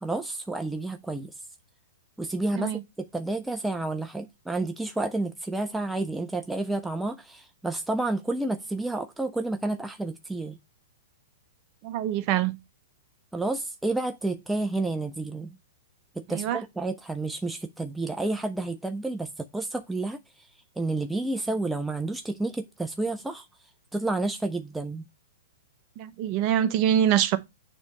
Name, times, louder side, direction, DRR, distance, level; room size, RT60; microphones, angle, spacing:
voice 1, 0.0-1.3 2.2-10.6 13.3-15.5 16.2-20.2 20.8-23.5 23.9-25.1, right 2 dB, 5° right, 0.4 m, -30 dB
voice 2, 11.8-12.6 16.3-16.6 26.0-27.4, right 10 dB, 40° right, 0.8 m, -24 dB
7.0 x 3.1 x 5.3 m
hypercardioid pair, 115°, 0 cm